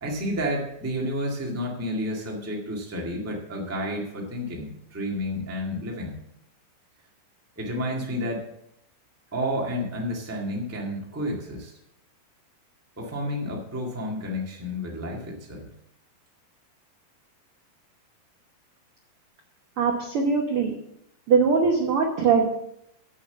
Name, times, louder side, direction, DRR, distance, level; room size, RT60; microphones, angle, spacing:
voice 1, 0.0-6.2 7.6-8.4 9.3-11.7 13.0-15.7, equal, 15° right, -2 dB, 0.5 m, -30 dB
voice 2, 19.8-20.7 21.3-22.5, right 5 dB, 85° right, 1 dB, 1.2 m, -21 dB
8.1 x 6.7 x 6.9 m, 0.79 s
omnidirectional pair, 4.1 m